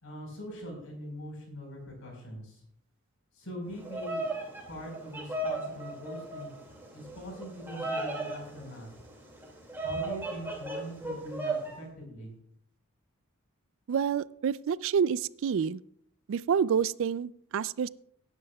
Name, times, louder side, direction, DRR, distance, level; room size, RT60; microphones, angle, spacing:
voice 1, 0.0-2.6 3.3-4.3 4.7-6.5 6.9-8.9 9.8-12.3, equal, 65° left, 1 dB, 4.6 m, -42 dB
Bird vocalization bird call bird song, 3.7-11.8, right 2 dB, 10° right, 2.2 m, -36 dB
voice 2, 13.9-15.8 16.3-17.9, right 7 dB, 60° right, 18 dB, 0.3 m, -28 dB
18.5 x 9.8 x 2.3 m, 0.68 s
head